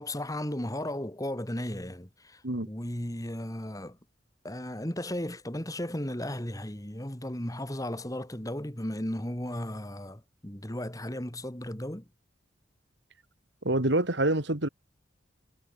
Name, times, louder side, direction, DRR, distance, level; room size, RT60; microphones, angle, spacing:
voice 1, 0.0-4.0 4.4-12.1, left 1 dB, 20° left, 2.6 m, -35 dB
voice 2, 13.6-14.7, right 1 dB, 70° right, 2.7 m, -26 dB
head